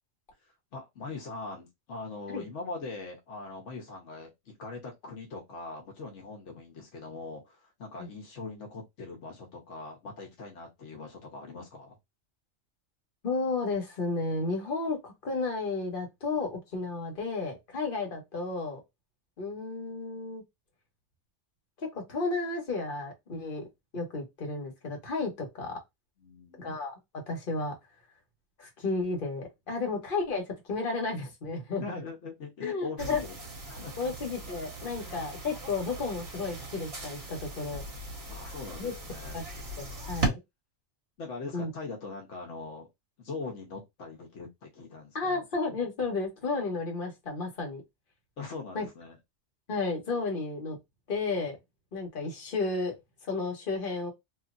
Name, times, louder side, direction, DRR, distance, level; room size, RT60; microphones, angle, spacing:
voice 1, 0.7-12.0 26.2-26.7 31.8-33.4 33.7-34.1 38.3-39.4 41.2-42.9 43.2-45.4 48.4-49.2, left 3 dB, 80° left, 1.2 m, -41 dB
voice 2, 13.2-18.8 19.4-20.4 21.8-23.6 23.9-25.8 26.6-26.9 27.3-27.7 28.6-31.8 32.6-33.2 33.8-37.8 38.8-38.9 39.3-39.4 39.8-40.4 41.5-41.7 45.1-47.8 48.7-48.9 49.7-50.8 51.1-51.6 51.9-52.9 53.3-54.1, left 3 dB, 50° left, 1.3 m, -32 dB
sound 1, 33.0-40.3, right 2 dB, 60° right, 1.5 m, -38 dB
3.1 x 2.8 x 2.5 m
omnidirectional pair, 1.2 m